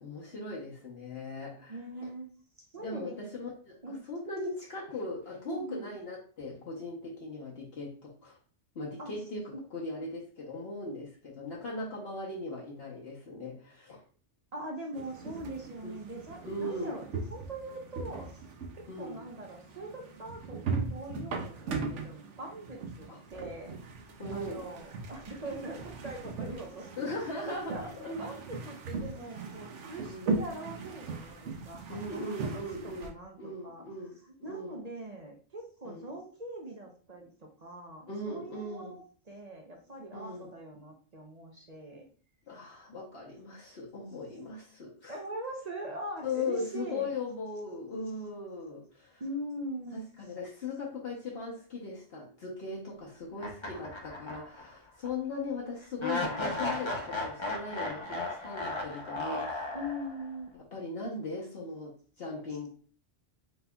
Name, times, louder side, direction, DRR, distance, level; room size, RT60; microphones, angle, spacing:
voice 1, 0.0-1.8 2.8-8.4 8.7-14.0 15.8-15.9 16.4-17.0 18.9-19.3 23.1-23.2 24.2-24.7 27.0-28.3 30.1-30.3 31.9-33.1 33.4-34.9 35.8-36.1 38.1-39.0 40.1-40.5 42.5-45.2 46.2-49.2 49.9-59.6 60.5-62.7, left 2 dB, 60° left, -4 dB, 1.1 m, -39 dB
voice 2, 1.7-2.3 2.6-3.1 3.8-4.0 5.5-5.8 9.0-9.1 14.5-17.0 17.3-18.4 18.7-23.7 24.3-27.9 28.2-33.4 33.6-33.8 34.4-39.0 39.3-42.0 45.1-47.1 49.2-50.0 59.7-60.6, right 1 dB, 40° right, 1 dB, 0.7 m, -42 dB
sound 1, 14.9-33.1, right 4 dB, 75° right, 1.0 m, -39 dB
sound 2, 53.4-54.7 55.0-55.1 56.0-60.3, left 2 dB, 30° left, 0.6 m, -35 dB
4.3 x 3.9 x 2.2 m, 0.43 s
omnidirectional pair, 1.2 m